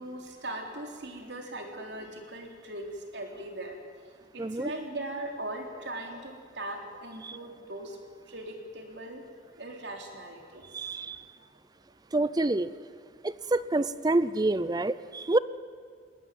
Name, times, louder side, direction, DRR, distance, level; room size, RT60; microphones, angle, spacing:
voice 1, 0.0-8.0 8.3-9.3 9.6-11.5, right 1 dB, 60° right, 3 dB, 3.8 m, -40 dB
voice 2, 4.4-4.7 7.2-7.3 10.7-11.2 12.1-12.7 13.2-15.4, right 2 dB, 20° right, 16 dB, 0.5 m, -27 dB
20.5 x 20.0 x 9.3 m, 2.1 s
head